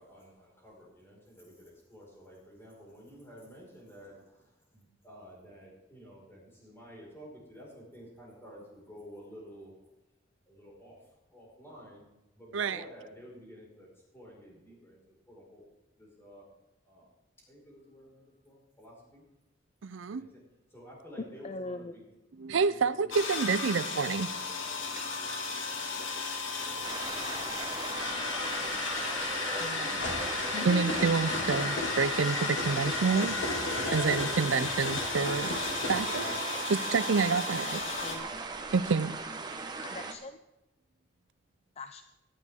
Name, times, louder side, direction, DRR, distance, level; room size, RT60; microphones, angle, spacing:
voice 1, 0.0-9.7 10.5-11.0 11.3-12.0 12.3-13.9 14.1-15.0 15.3-15.6 16.0-16.4 16.8-17.1 17.5-19.2 20.1-20.4 20.7-22.0 22.5-23.1 24.7-24.9, equal, 15° left, -4 dB, 5.1 m, -51 dB
voice 2, 12.5-12.8 19.8-20.3 22.4-24.3 25.3-25.4 29.6-30.0 30.6-33.4 33.9-35.6 35.9-36.3 36.7-37.8 38.7-39.2, right 5 dB, 75° right, 15 dB, 0.5 m, -28 dB
voice 3, 21.4-21.9 27.8-28.0 30.9-31.6 32.4-32.5 33.1-33.3 38.0-38.3 39.8-40.4 41.8-42.0, left 3 dB, 35° left, 9 dB, 0.5 m, -42 dB
sound 1, 23.1-38.2, left 3 dB, 85° left, 2.1 m, -34 dB
sound 2, 26.6-36.3, left 2 dB, 60° left, 2.3 m, -39 dB
sound 3, 26.8-40.1, right 4 dB, 20° right, 1.0 m, -39 dB
17.5 x 11.5 x 3.7 m, 0.98 s
head